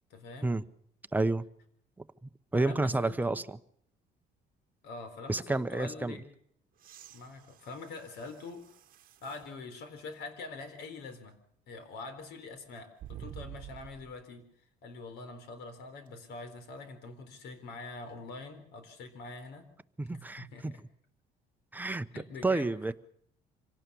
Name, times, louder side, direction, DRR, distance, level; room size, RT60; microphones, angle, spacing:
voice 1, 0.1-0.6 2.5-3.4 4.8-6.3 7.1-8.6 9.2-11.4 11.7-14.5 14.8-19.7 20.1-20.8 22.1-22.7, left 3 dB, 80° left, 4.0 m, -44 dB
voice 2, 1.1-1.5 2.5-3.6 5.3-6.1 20.0-20.7 21.7-22.1 22.4-22.9, right 2 dB, 10° right, 0.9 m, -30 dB
sound 1, 6.8-9.5 10.2-10.3 13.0-14.2 16.1-16.2, right 12 dB, 55° right, 1.1 m, -49 dB
25.5 x 17.5 x 7.0 m
cardioid pair, 110°, 17 cm